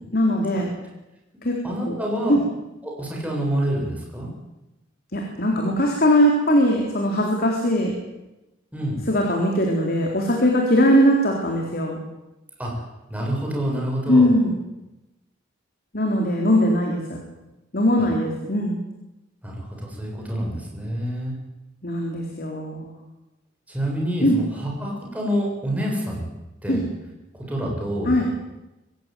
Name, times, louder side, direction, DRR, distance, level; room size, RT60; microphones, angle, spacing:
voice 1, 0.1-0.7 1.4-1.6 1.9-2.0 2.3-2.4 5.1-7.9 9.1-12.0 14.1-14.6 15.9-17.2 17.7-18.8 21.8-22.9 24.2-24.4 26.7-26.8 28.1-28.3, equal, 50° left, 0 dB, 4.0 m, -20 dB
voice 2, 1.6-2.4 2.8-4.3 8.7-9.0 12.6-12.7 13.1-14.3 19.4-21.3 23.7-26.3 26.6-26.8 27.4-28.2, equal, 5° right, -2 dB, 7.6 m, -27 dB
25.0 x 15.5 x 9.3 m, 0.99 s
head